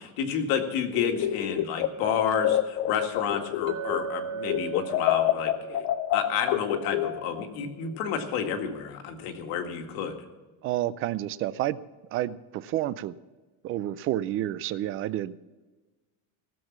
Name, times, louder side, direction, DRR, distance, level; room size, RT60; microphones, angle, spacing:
voice 1, 0.0-5.9 6.1-10.2, left 7 dB, 75° left, 4 dB, 2.0 m, -30 dB
sound 1, 0.9-4.2 4.5-7.5, left 13 dB, 45° left, 0.5 m, -28 dB
Chink clink, 3.7-7.8, right 7 dB, 65° right, 2.6 m, -38 dB
voice 2, 10.6-11.8 12.1-13.2 13.6-15.4, right 13 dB, 35° right, 17 dB, 0.4 m, -30 dB
17.5 x 7.4 x 7.2 m, 1.2 s
cardioid pair, 180°, 37 cm